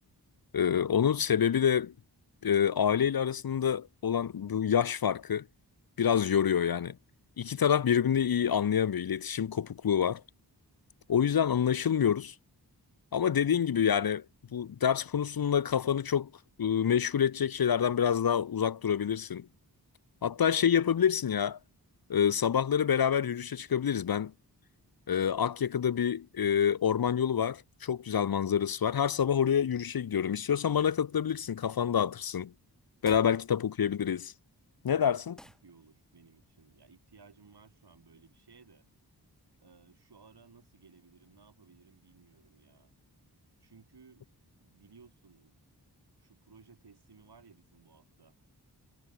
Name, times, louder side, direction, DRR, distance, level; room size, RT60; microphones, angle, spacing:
voice 1, 0.5-1.9 2.4-5.4 6.0-7.0 7.4-10.2 11.1-12.3 13.1-14.2 14.5-16.3 16.6-19.5 20.2-21.6 22.1-24.3 25.1-32.5 33.0-34.3 34.8-35.3, left 8 dB, 60° left, 0.7 m, -27 dB
sound 1, 32.9-33.4 35.4-35.7, equal, ahead, 3.5 m, -50 dB
voice 2, 35.4-38.9 39.6-42.9 43.6-44.3 44.6-45.5 46.2-48.3, right 5 dB, 75° right, 5.9 m, -59 dB
wide cardioid pair, 100°, 40 cm